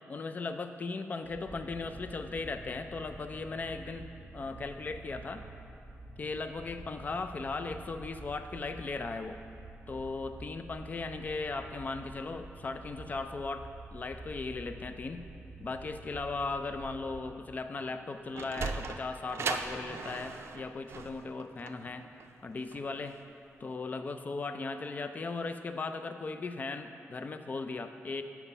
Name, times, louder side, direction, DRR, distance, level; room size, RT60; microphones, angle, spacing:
voice 1, 0.1-4.1 4.3-5.4 6.2-9.4 9.9-15.3 15.6-22.0 22.4-23.2 23.6-28.2, left 3 dB, 35° left, 8 dB, 0.4 m, -37 dB
sound 1, 1.2-17.5, right 2 dB, ahead, 1.3 m, -49 dB
Sliding door, 18.0-23.2, right 5 dB, 60° right, 0.4 m, -38 dB
7.0 x 5.9 x 5.5 m, 2.5 s
wide cardioid pair, 135°, 5 cm